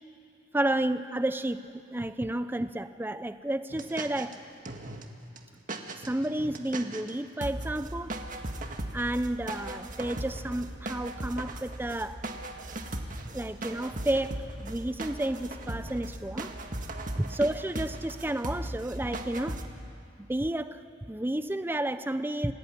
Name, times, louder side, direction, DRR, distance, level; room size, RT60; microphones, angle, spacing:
voice 1, 0.5-4.4 6.1-8.1 8.9-12.2 13.3-16.5 17.2-19.6 20.2-20.8 21.1-22.5, right 1 dB, 10° right, 11 dB, 0.6 m, -31 dB
sound 1, 3.7-4.3 4.6-5.0 5.4-5.5 5.7-7.1 7.4-19.7, right 1 dB, 45° right, 1.8 m, -38 dB
26.5 x 18.0 x 10.0 m, 2.5 s
head